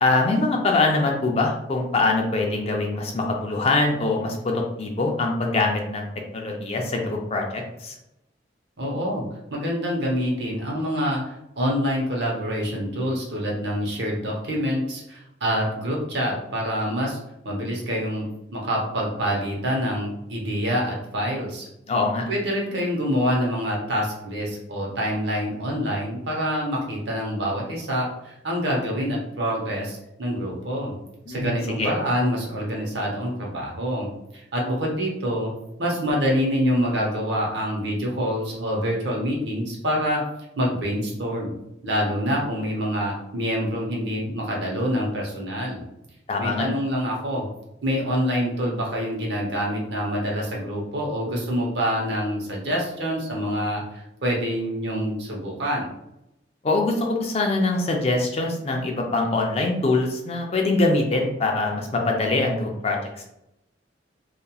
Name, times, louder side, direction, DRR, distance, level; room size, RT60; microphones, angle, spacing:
voice 1, 0.0-7.9 21.9-22.2 31.3-31.9 46.3-46.7 56.6-63.0, left 2 dB, 35° left, 1 dB, 0.4 m, -23 dB
voice 2, 8.8-9.2 9.5-11.2 11.6-17.2 17.4-18.2 18.5-21.7 22.3-31.0 31.3-35.5 35.8-40.2 40.6-41.5 41.8-45.8 46.4-47.4 47.8-55.9, equal, 70° right, -2 dB, 0.8 m, -26 dB
2.9 x 2.4 x 2.3 m, 0.83 s
head